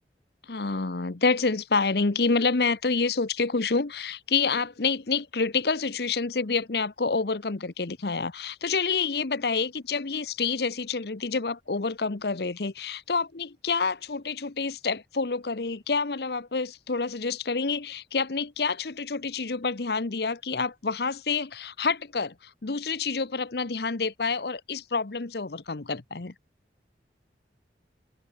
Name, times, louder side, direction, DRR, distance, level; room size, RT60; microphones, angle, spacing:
voice 1, 0.4-26.3, left 4 dB, 65° left, 0.9 m, -28 dB
open air
head